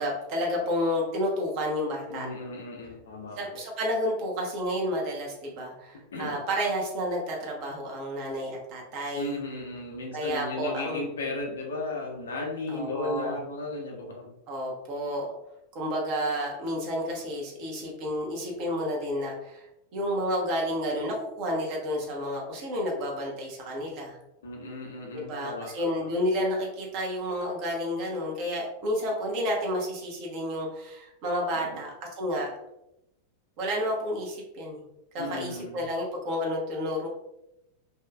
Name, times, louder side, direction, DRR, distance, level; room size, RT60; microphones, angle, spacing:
voice 1, 0.0-2.3 3.4-9.3 10.1-11.0 12.7-13.4 14.5-15.3 15.7-19.7 19.9-24.2 25.1-32.5 33.6-34.8 35.1-37.1, equal, 45° right, -1 dB, 0.8 m, -30 dB
voice 2, 2.1-3.6 6.1-6.4 9.1-14.3 24.4-26.1 31.6-31.8 35.2-35.9, left 2 dB, 65° left, -1 dB, 0.6 m, -35 dB
2.7 x 2.3 x 2.3 m, 0.86 s
figure-of-eight pair, 90°, 0 cm